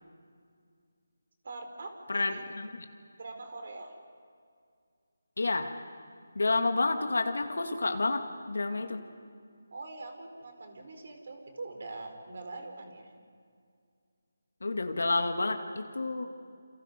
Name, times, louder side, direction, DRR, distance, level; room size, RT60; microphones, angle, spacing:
voice 1, 1.4-2.4 3.2-4.0 9.7-13.1, right 2 dB, 55° right, 5 dB, 4.5 m, -43 dB
voice 2, 2.1-2.9 5.4-5.8 6.3-9.0 14.6-16.3, left 3 dB, 75° left, 5 dB, 2.3 m, -30 dB
28.5 x 28.5 x 5.4 m, 2.2 s
figure-of-eight pair, 165°, 0 cm